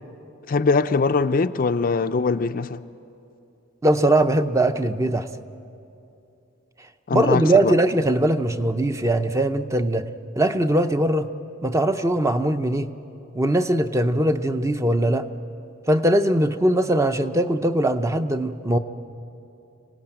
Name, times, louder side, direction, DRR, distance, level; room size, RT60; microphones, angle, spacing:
voice 1, 0.5-2.8 7.1-7.7, left 4 dB, 45° left, 0.5 m, -22 dB
voice 2, 3.8-5.3 7.1-10.1 10.4-11.3 11.6-12.9 13.4-15.3 15.9-18.8, right 1 dB, 15° right, 0.6 m, -21 dB
25.5 x 17.5 x 8.9 m
head